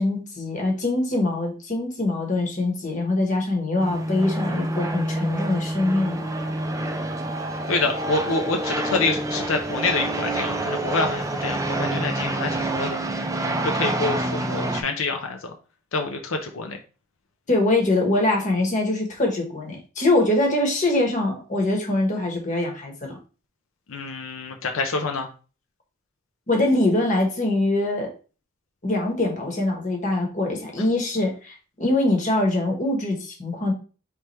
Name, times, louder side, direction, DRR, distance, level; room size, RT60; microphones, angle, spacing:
voice 1, 0.0-6.3 17.5-23.2 26.5-28.1 28.8-33.7, left 2 dB, 40° left, 1 dB, 1.2 m, -23 dB
sound 1, 3.8-14.8, right 1 dB, 15° right, 0.4 m, -27 dB
voice 2, 7.7-13.0 13.6-15.5 15.9-16.8 23.9-25.3, left 3 dB, 90° left, 4 dB, 0.6 m, -27 dB
3.4 x 3.3 x 4.2 m, 0.36 s
head